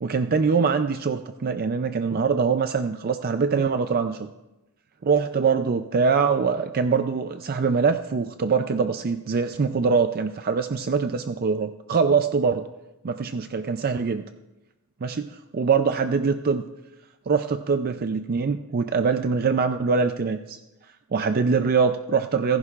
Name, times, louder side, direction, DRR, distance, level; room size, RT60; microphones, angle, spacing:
voice 1, 0.0-4.3 5.0-12.7 13.0-14.2 15.0-16.6 17.3-20.6 21.1-22.6, right 5 dB, 45° right, 8 dB, 0.4 m, -23 dB
29.0 x 11.0 x 2.4 m, 1.0 s
head